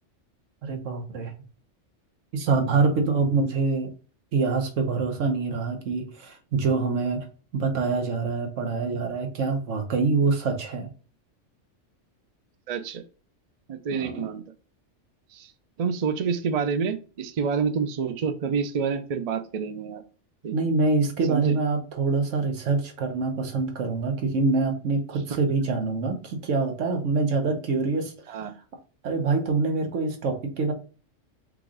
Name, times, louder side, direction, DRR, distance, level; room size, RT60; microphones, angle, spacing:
voice 1, 0.6-1.3 2.3-3.9 4.3-7.3 7.5-10.9 13.9-14.3 20.5-28.3 29.0-30.7, right 4 dB, 85° right, 1.2 m, -25 dB
voice 2, 12.7-13.0 13.7-14.4 15.3-15.5 15.8-20.0 20.4-20.5 21.3-21.5 28.3-28.5, right 6 dB, 55° right, 0.4 m, -28 dB
4.7 x 2.4 x 3.8 m
omnidirectional pair, 1.3 m